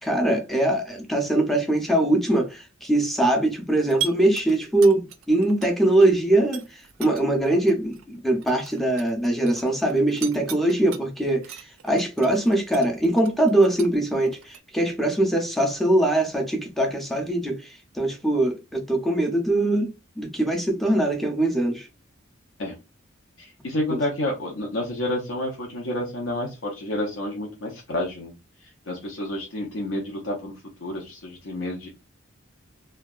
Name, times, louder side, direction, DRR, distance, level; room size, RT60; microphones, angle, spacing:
voice 1, 0.0-21.9 23.6-24.0, right 1 dB, ahead, 0.4 m, -22 dB
sound 1, 3.8-6.1 6.4-11.0 11.4-14.6, right 9 dB, 90° right, 0.4 m, -38 dB
voice 2, 23.4-28.3 28.9-30.5 30.8-31.9, left 1 dB, 75° left, 0.6 m, -29 dB
2.7 x 2.2 x 2.3 m
head